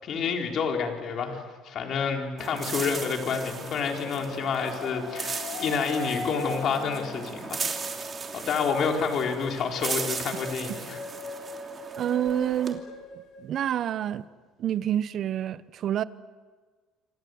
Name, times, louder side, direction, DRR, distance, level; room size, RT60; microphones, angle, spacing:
voice 1, 0.0-7.7 8.3-11.0, left 6 dB, 45° left, 4.2 m, -29 dB
sound 1, 2.4-12.7, right 5 dB, 25° right, 3.0 m, -37 dB
sound 2, 2.8-3.1 3.9-13.9, left 2 dB, 70° left, 6.8 m, -41 dB
voice 2, 12.0-12.8 13.4-14.3 14.6-16.0, right 10 dB, 45° right, 0.9 m, -27 dB
28.0 x 25.5 x 8.0 m
cardioid pair, 140°, 0 cm